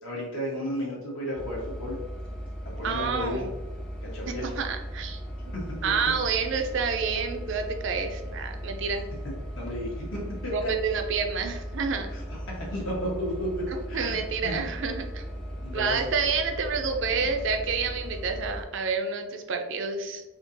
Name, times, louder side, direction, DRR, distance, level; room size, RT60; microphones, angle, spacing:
voice 1, 0.0-2.0 2.6-3.5 4.0-4.5 5.5-5.6 6.0-6.1 9.2-10.7 12.1-12.2 12.5-14.6 15.6-16.0 17.2-17.3, left 1 dB, 70° left, -4 dB, 1.3 m, -33 dB
sound 1, 1.4-18.6, equal, 5° left, 0.4 m, -37 dB
voice 2, 2.8-3.5 4.3-5.2 5.8-9.0 10.5-12.1 13.7-15.2 15.7-20.2, right 5 dB, 55° right, 5 dB, 0.4 m, -29 dB
3.6 x 2.8 x 2.7 m, 1.1 s
head